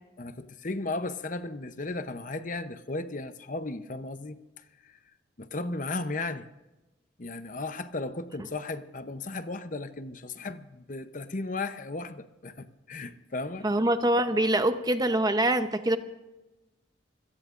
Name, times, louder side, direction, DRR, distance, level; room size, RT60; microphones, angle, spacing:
voice 1, 0.2-5.0 5.4-6.5 7.2-13.7, left 2 dB, 40° left, 10 dB, 0.8 m, -35 dB
voice 2, 13.6-16.0, right 1 dB, 20° right, 9 dB, 0.8 m, -24 dB
26.5 x 17.5 x 2.5 m, 1.1 s
head